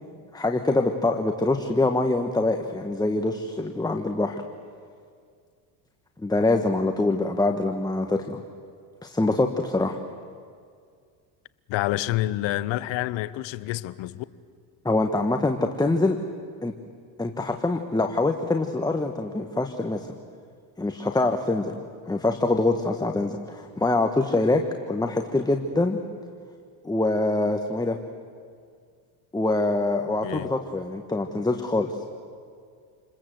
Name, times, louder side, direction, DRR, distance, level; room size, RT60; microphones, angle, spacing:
voice 1, 0.3-4.4 6.2-8.4 9.0-10.0 14.8-16.2 16.6-16.7 17.2-20.1 20.8-26.0 26.8-28.0 29.3-32.0, left 2 dB, 10° left, 1.4 m, -24 dB
voice 2, 11.7-14.2 30.2-30.5, left 16 dB, 65° left, 1.1 m, -28 dB
28.5 x 21.0 x 7.9 m
supercardioid pair, 85°, 49 cm